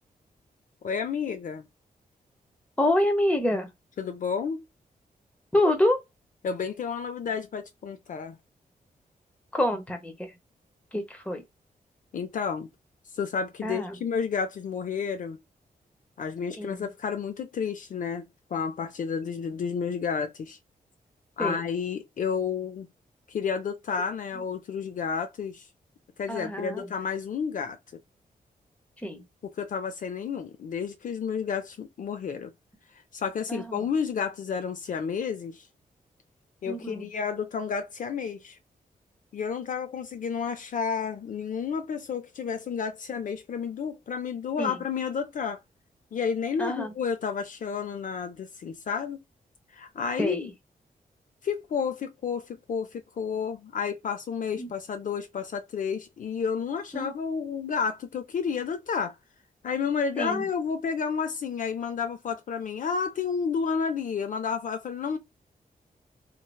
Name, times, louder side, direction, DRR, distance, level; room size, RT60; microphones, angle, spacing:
voice 1, 0.8-1.7 4.0-4.7 6.4-8.4 12.1-12.7 13.1-15.4 16.2-20.6 21.4-22.9 23.3-25.7 26.2-27.8 29.4-32.5 33.1-35.7 36.6-38.6 39.3-45.6 46.1-49.2 49.7-50.5 51.4-59.1 59.6-65.2, left 6 dB, 60° left, 0.5 m, -31 dB
voice 2, 2.8-3.7 5.5-6.0 9.5-10.3 10.9-11.4 13.6-14.0 16.6-16.9 21.4-21.6 26.3-26.9 29.0-29.2 33.5-33.8 36.7-37.0 44.6-44.7 46.6-46.9 50.2-50.5 54.6-54.7 56.9-57.1 60.2-60.5, left 1 dB, 10° left, 0.8 m, -27 dB
3.2 x 2.2 x 2.2 m
wide cardioid pair, 145°, 15 cm